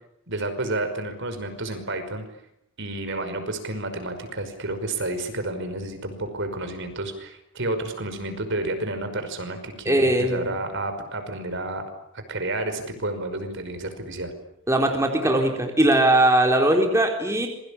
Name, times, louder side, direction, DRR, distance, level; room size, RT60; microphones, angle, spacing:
voice 1, 0.3-2.3 2.8-11.8 12.1-14.3, right 2 dB, 55° right, 8 dB, 5.5 m, -30 dB
voice 2, 9.9-10.6 14.7-17.5, right 1 dB, 15° right, 2 dB, 3.9 m, -20 dB
27.5 x 24.0 x 8.8 m, 0.76 s
head